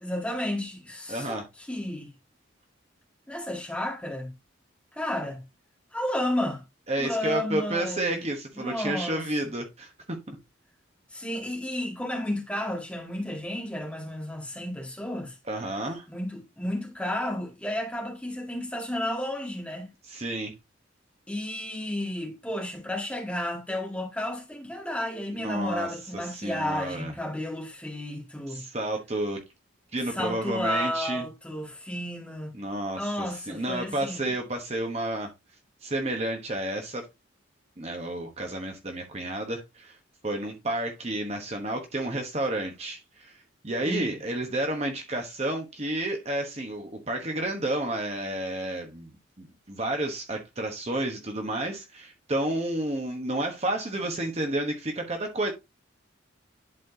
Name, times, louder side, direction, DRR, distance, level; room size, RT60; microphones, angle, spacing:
voice 1, 0.0-2.1 3.3-4.3 4.9-5.4 5.9-6.6 7.0-8.2 8.6-9.2 11.1-15.3 16.1-19.9 21.3-28.6 30.0-32.5 32.9-34.2 43.8-44.1, left 1 dB, 5° left, 1.9 m, -32 dB
voice 2, 1.1-1.4 6.9-10.4 15.5-16.1 20.1-20.5 25.4-25.9 26.3-27.1 28.5-29.4 29.9-31.2 32.5-35.3 35.8-37.0 37.8-40.0 40.2-43.3 43.6-49.1 49.4-55.5, right 1 dB, 30° right, 1.1 m, -31 dB
11.0 x 4.3 x 2.7 m
head